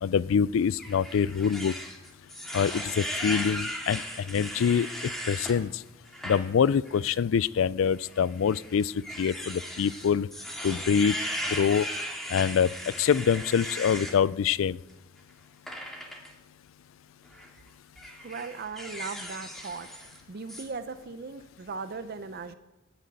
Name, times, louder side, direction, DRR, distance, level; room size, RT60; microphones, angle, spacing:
voice 1, 0.0-1.8 2.5-4.9 5.3-5.8 6.2-8.9 9.2-10.3 10.6-11.2 11.5-11.9 12.3-12.7 13.0-14.8, left 7 dB, 80° left, 21 dB, 0.4 m, -25 dB
sound 1, 0.8-5.6 6.1-6.4 6.8-7.0 8.0-14.2 15.7-16.3 17.2-17.5 18.0-20.2 20.5-20.6, equal, ahead, 2.3 m, -37 dB
voice 2, 18.2-19.9 20.3-22.6, right 4 dB, 55° right, 10 dB, 0.6 m, -38 dB
10.5 x 9.3 x 8.9 m, 1.0 s
head